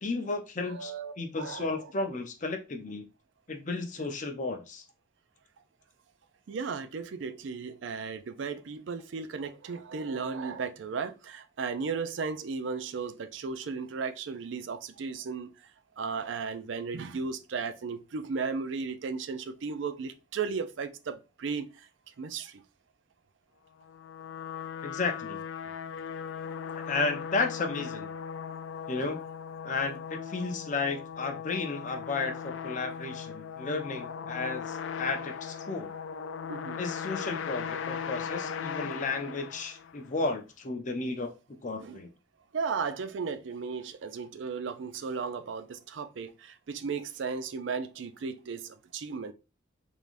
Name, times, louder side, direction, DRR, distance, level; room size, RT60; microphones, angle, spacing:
voice 1, 0.0-0.9 1.2-3.1 3.5-4.8 24.8-25.4 26.7-28.1 28.9-29.2 29.6-35.9 36.8-41.3 41.6-42.1, left 3 dB, 40° left, 0.6 m, -33 dB
voice 2, 0.6-1.9 4.0-4.1 6.5-15.5 16.0-21.7 22.2-22.6 29.0-29.1 36.5-36.8 41.8-42.0 42.5-49.3, right 5 dB, 80° right, 0.4 m, -35 dB
sound 1, 23.8-40.1, left 7 dB, 85° left, 0.3 m, -38 dB
3.5 x 3.3 x 2.5 m
head